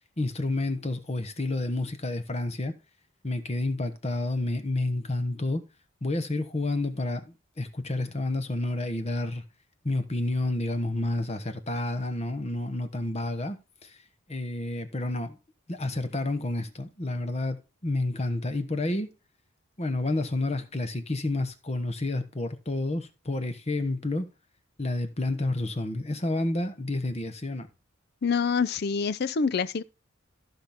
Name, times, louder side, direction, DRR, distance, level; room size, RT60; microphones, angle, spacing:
voice 1, 0.2-2.7 3.2-5.6 6.0-9.4 9.8-14.0 14.3-15.4 15.7-19.1 19.8-24.3 24.8-27.7, left 2 dB, 30° left, 1.1 m, -30 dB
voice 2, 28.2-29.8, left 5 dB, 50° left, 0.5 m, -26 dB
14.5 x 5.9 x 3.5 m
head